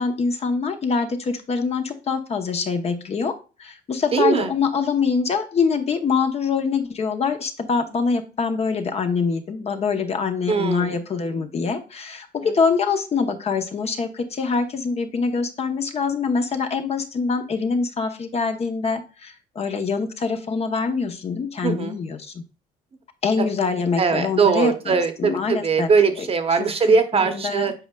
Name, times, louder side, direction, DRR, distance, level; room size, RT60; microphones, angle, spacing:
voice 1, 0.0-3.3 3.6-22.4 23.2-25.9 27.1-27.7, left 5 dB, 40° left, 6 dB, 1.0 m, -24 dB
voice 2, 4.1-4.5 10.5-11.0 11.3-11.4 12.4-12.5 21.6-22.0 23.4-23.5 24.0-27.7, right 5 dB, 35° right, 8 dB, 1.0 m, -21 dB
7.9 x 5.1 x 2.3 m, 0.33 s
cardioid pair, 110°, 17 cm